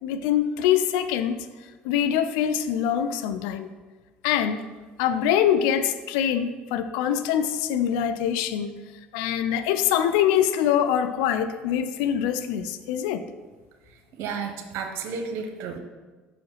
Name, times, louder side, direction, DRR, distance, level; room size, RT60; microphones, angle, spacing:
voice 1, 0.0-1.5 1.8-3.7 4.2-4.6 5.0-8.7 9.1-13.2, left 9 dB, 80° left, 11 dB, 0.5 m, -24 dB
voice 2, 14.2-15.8, right 5 dB, 65° right, 5 dB, 0.9 m, -32 dB
5.7 x 5.0 x 5.6 m, 1.4 s
hypercardioid pair, 70°, 5 cm